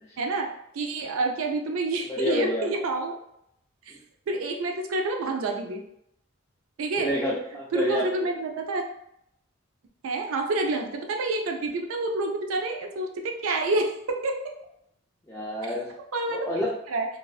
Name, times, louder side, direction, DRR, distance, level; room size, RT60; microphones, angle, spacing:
voice 1, 0.2-3.1 4.3-5.8 6.8-7.1 7.7-8.8 10.0-13.9 14.2-14.3 16.1-16.5 16.9-17.1, right 2 dB, 80° right, 3 dB, 0.4 m, -28 dB
voice 2, 2.1-2.7 7.0-8.3 15.3-15.9 16.3-16.8, left 1 dB, 10° left, -7 dB, 0.3 m, -29 dB
2.4 x 2.3 x 2.3 m, 0.76 s
head